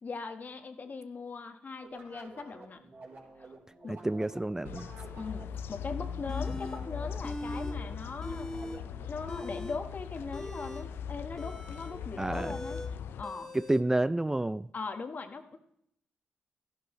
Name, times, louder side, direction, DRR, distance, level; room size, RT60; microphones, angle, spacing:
voice 1, 0.0-2.8 3.4-3.5 3.8-4.0 5.2-8.5 9.1-12.8 13.2-13.5 14.7-15.6, left 4 dB, 50° left, 7 dB, 1.3 m, -40 dB
sound 1, 1.8-9.9, right 3 dB, 55° right, 4.1 m, -51 dB
voice 2, 3.9-4.9 12.2-12.5 13.7-14.7, right 1 dB, 15° right, 15 dB, 0.3 m, -29 dB
sound 2, 4.6-13.2, left 7 dB, 80° left, 0.4 m, -39 dB
sound 3, 6.3-6.8 7.2-7.8 8.0-8.8 9.2-13.8, left 1 dB, 15° left, 1.6 m, -41 dB
13.5 x 11.0 x 3.2 m, 0.72 s
supercardioid pair, 55°, 4 cm